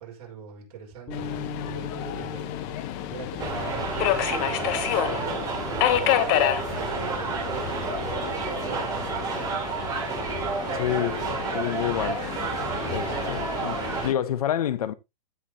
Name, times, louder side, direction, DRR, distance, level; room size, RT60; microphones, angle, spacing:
voice 1, 0.0-2.4 3.1-6.5 6.8-7.7 8.2-9.9, right 6 dB, 45° right, 5.7 m, -43 dB
Subway metro underground, 1.1-14.1, left 12 dB, 35° left, 1.2 m, -30 dB
sound 1, 1.1-7.5, left 4 dB, 15° left, 4.0 m, -41 dB
sound 2, 3.4-14.1, right 4 dB, 20° right, 3.9 m, -30 dB
voice 2, 10.7-11.2 11.5-12.2 12.9-14.9, left 11 dB, 75° left, 1.2 m, -28 dB
15.5 x 6.3 x 2.9 m
hypercardioid pair, 155°, 19 cm